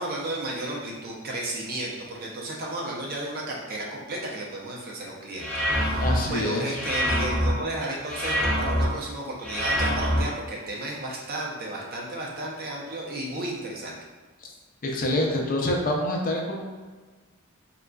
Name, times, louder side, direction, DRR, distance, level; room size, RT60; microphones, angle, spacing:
voice 1, 0.0-14.0, right 1 dB, 45° right, -3 dB, 0.6 m, -33 dB
sound 1, 5.4-6.2 6.7-7.5 8.1-8.9 9.4-10.2, equal, 5° left, 1.0 m, -25 dB
voice 2, 6.0-6.8 14.8-16.6, left 1 dB, 40° left, 0 dB, 0.4 m, -26 dB
3.7 x 2.3 x 2.3 m, 1.4 s
head